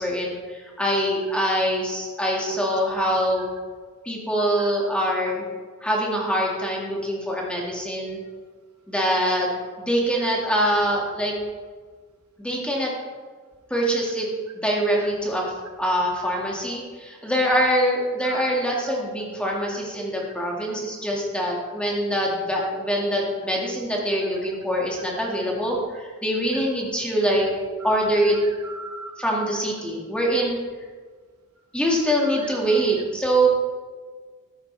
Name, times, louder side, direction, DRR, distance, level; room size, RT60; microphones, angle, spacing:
voice 1, 0.0-3.5 4.0-5.5 5.8-8.2 8.9-9.5 9.8-11.3 12.4-12.9 13.7-14.3 14.6-15.5 15.8-27.5 27.8-28.4 29.2-30.6 31.7-33.5, equal, 5° left, -3 dB, 2.1 m, -24 dB
voice 2, 28.6-29.2 32.2-32.6, right 4 dB, 85° right, 5 dB, 1.2 m, -38 dB
13.5 x 10.5 x 3.4 m, 1.5 s
head